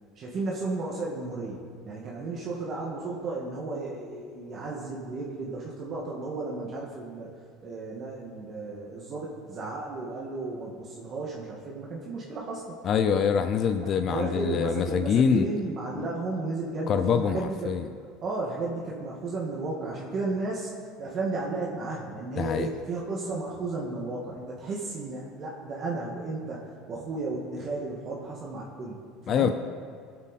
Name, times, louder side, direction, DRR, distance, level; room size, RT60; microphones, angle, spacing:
voice 1, 0.2-7.3 7.6-12.8 13.8-17.6 18.2-20.7 21.0-29.5, right 3 dB, 40° right, -3 dB, 1.8 m, -34 dB
voice 2, 12.8-15.5 16.0-16.1 16.9-17.8 22.4-22.7 29.3-29.5, left 7 dB, 45° left, 8 dB, 0.5 m, -25 dB
20.0 x 7.6 x 4.2 m, 2.2 s
supercardioid pair, 115°, 0 cm